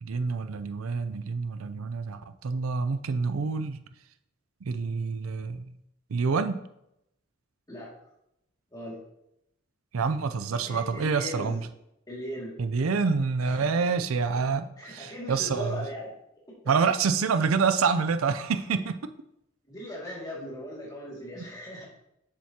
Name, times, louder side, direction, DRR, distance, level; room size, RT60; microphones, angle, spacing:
voice 1, 0.0-3.8 4.6-5.7 6.1-6.6 9.9-11.7 12.6-15.8 16.7-18.9, right 5 dB, 90° right, 10 dB, 0.5 m, -27 dB
voice 2, 10.7-11.6 12.1-12.6 13.4-13.7 14.8-16.1 16.5-16.6 19.7-21.9, equal, 20° left, -4 dB, 2.2 m, -38 dB
7.6 x 6.8 x 2.9 m, 0.80 s
head